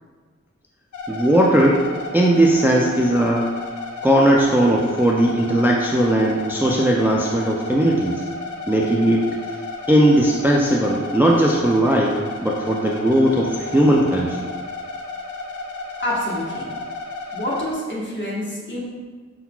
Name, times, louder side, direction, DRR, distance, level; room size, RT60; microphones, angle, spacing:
sound 1, 0.9-17.7, left 3 dB, 80° left, 0.6 m, -33 dB
voice 1, 1.1-1.9 2.1-3.5 4.0-8.2 8.7-9.3 9.9-14.5, right 1 dB, 5° right, -2 dB, 0.4 m, -18 dB
voice 2, 16.0-16.7 17.3-18.8, left 1 dB, 40° left, -5 dB, 1.3 m, -27 dB
5.7 x 3.8 x 2.3 m, 1.5 s
wide cardioid pair, 75°, 29 cm